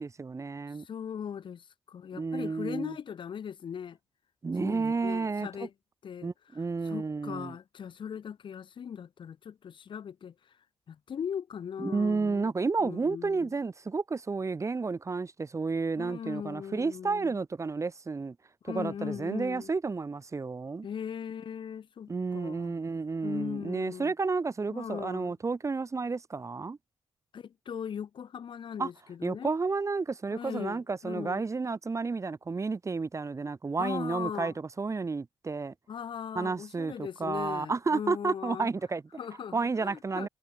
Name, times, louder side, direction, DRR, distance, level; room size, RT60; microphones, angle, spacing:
voice 1, 0.0-0.9 2.1-3.0 4.4-5.5 6.2-7.6 11.8-18.4 18.6-20.9 22.1-26.8 28.8-28.9 29.2-35.7 36.3-39.0 39.5-40.3, right 4 dB, 35° right, 0.8 m, -31 dB
voice 2, 0.8-4.0 4.6-5.7 6.0-6.3 6.8-10.3 10.9-12.5 12.8-13.5 16.0-17.4 18.6-19.7 20.8-22.7 23.2-24.1 24.7-25.3 27.3-29.5 30.3-31.5 33.8-34.5 35.9-38.7 39.2-40.3, left 8 dB, 65° left, 1.2 m, -39 dB
cardioid pair, 60°, 9 cm